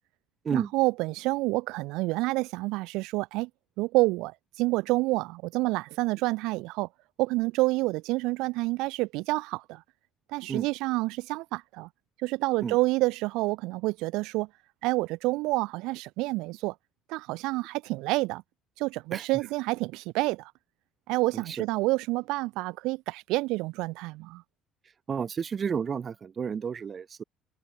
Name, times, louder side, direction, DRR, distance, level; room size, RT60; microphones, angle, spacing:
voice 1, 0.5-3.5 3.8-6.9 7.2-9.8 10.3-11.9 12.2-14.5 14.8-16.7 17.1-18.4 18.8-20.5 21.1-24.4, right 22 dB, 80° right, 1.2 m, -28 dB
voice 2, 21.3-21.7 25.1-27.2, right 6 dB, 40° right, 1.6 m, -31 dB
open air
supercardioid pair, 85°, 0 cm